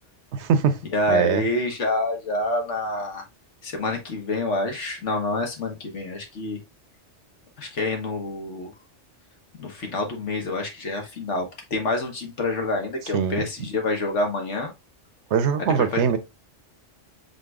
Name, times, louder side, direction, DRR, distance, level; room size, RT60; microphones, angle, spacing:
voice 1, 0.3-0.8 1.1-1.5 13.1-13.7 15.3-16.2, right 7 dB, 70° right, 0.9 m, -22 dB
voice 2, 0.9-3.2 3.6-6.6 7.6-8.7 9.6-14.7 15.6-16.0, left 2 dB, 75° left, 1.5 m, -27 dB
5.3 x 4.0 x 2.3 m
omnidirectional pair, 1.3 m